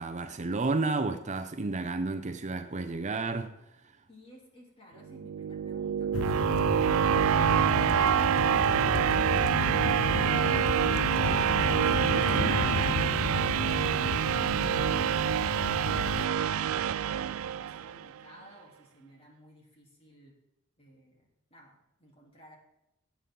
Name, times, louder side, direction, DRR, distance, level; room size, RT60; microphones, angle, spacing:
voice 1, 0.0-3.6 12.1-12.6, right 3 dB, 35° right, 0.6 m, -32 dB
voice 2, 4.1-13.1 13.4-16.7 17.1-20.3 20.8-22.6, equal, 30° left, 3.4 m, -56 dB
sound 1, 5.1-18.1, right 9 dB, 75° right, 0.3 m, -26 dB
sound 2, 6.1-16.3, left 5 dB, 75° left, 0.4 m, -33 dB
sound 3, 6.8-14.8, right 2 dB, 55° right, 1.0 m, -44 dB
18.0 x 8.3 x 3.9 m
head